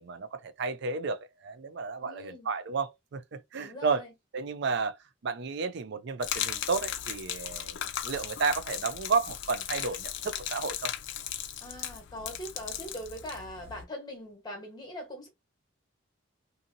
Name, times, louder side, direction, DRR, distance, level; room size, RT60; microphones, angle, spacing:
voice 1, 0.0-4.0 4.3-5.0 5.2-7.8 8.0-10.9, right 4 dB, 55° right, 0.4 m, -32 dB
voice 2, 2.0-2.5 3.6-4.1 11.6-15.3, equal, 20° left, 1.1 m, -42 dB
Gurgling / Liquid, 6.2-13.8, left 10 dB, 60° left, 0.4 m, -37 dB
2.6 x 2.6 x 2.6 m
head